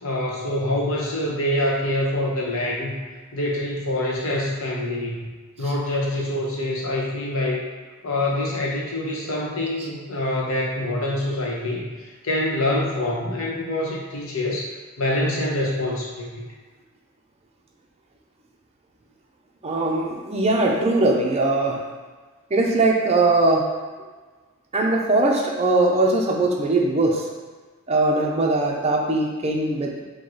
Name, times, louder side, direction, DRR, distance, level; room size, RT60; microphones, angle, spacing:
voice 1, 0.0-2.9 3.3-5.3 5.6-7.6 8.0-11.9 12.2-14.7 15.0-16.4, left 1 dB, 65° left, -3 dB, 0.9 m, -25 dB
voice 2, 19.6-21.8 22.5-23.6 24.7-27.2 27.9-30.0, right 2 dB, 30° right, -1 dB, 0.6 m, -20 dB
4.9 x 2.2 x 3.9 m, 1.4 s
head